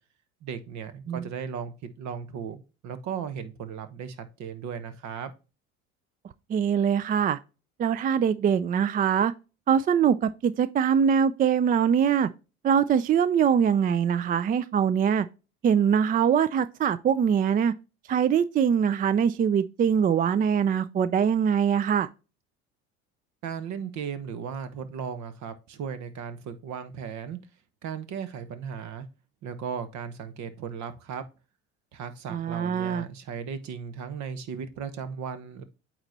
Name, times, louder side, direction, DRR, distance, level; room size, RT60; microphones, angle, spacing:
voice 1, 0.4-5.3 23.4-27.4 27.8-29.1 29.4-31.2 31.9-35.6, right 7 dB, 55° right, 1.1 m, -36 dB
voice 2, 6.5-7.4 7.8-9.3 9.7-12.3 12.6-15.3 15.6-17.7 18.1-22.1 32.3-33.1, right 8 dB, 25° right, 0.4 m, -23 dB
8.8 x 3.1 x 4.0 m
hypercardioid pair, 75°, 33 cm